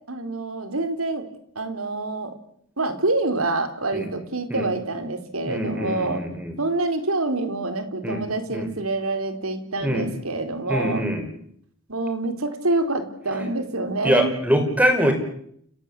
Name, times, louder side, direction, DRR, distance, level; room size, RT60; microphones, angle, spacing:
voice 1, 0.1-1.3 1.6-2.4 2.8-6.2 6.6-11.0 11.9-14.3, right 2 dB, 90° right, 8 dB, 4.1 m, -26 dB
voice 2, 5.4-6.5 8.0-8.2 8.5-8.7 9.8-10.1 10.7-11.2 14.0-15.1, equal, 5° right, 6 dB, 5.2 m, -23 dB
30.0 x 17.0 x 8.4 m, 0.67 s
head